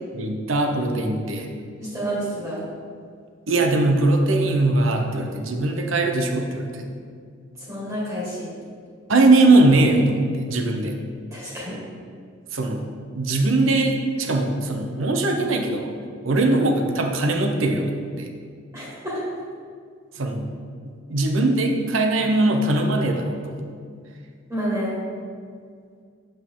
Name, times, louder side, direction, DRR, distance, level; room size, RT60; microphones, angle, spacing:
voice 1, 0.1-1.5 3.5-6.9 9.1-11.0 12.5-12.8 13.1-15.9 16.2-17.9 18.2-18.3 20.1-20.5 20.8-23.5, right 2 dB, 80° right, 3 dB, 0.8 m, -20 dB
voice 2, 1.8-2.6 7.7-8.5 11.3-11.8 18.7-19.2 24.5-25.0, equal, 15° right, -7 dB, 2.0 m, -29 dB
8.4 x 5.2 x 3.8 m, 2.1 s
head